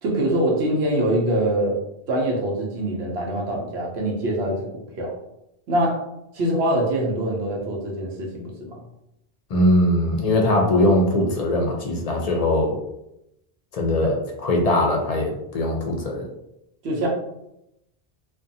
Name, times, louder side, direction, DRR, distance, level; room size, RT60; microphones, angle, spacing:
voice 1, 0.0-1.8 2.1-5.1 5.7-6.0 6.3-8.8 14.0-14.1 16.8-17.1, right 1 dB, 90° right, -1 dB, 1.0 m, -24 dB
voice 2, 9.5-12.8 13.7-14.1 14.4-16.3, left 1 dB, 50° left, 1 dB, 0.5 m, -21 dB
2.5 x 2.2 x 2.6 m, 0.83 s
omnidirectional pair, 1.0 m